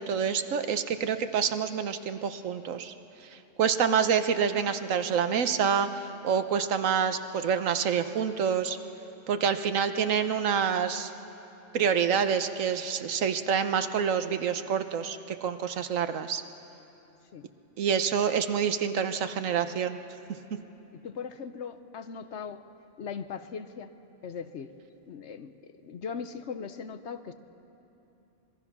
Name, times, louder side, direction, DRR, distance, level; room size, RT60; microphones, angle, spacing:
voice 1, 0.0-2.9 3.3-8.8 9.3-11.1 11.7-16.4 17.8-20.0, right 7 dB, 85° right, 9 dB, 1.3 m, -27 dB
voice 2, 20.9-22.6 23.0-23.9 24.2-24.7 25.1-25.5 25.8-27.3, left 6 dB, 65° left, 11 dB, 1.1 m, -39 dB
25.5 x 21.0 x 6.0 m, 3.0 s
omnidirectional pair, 1.3 m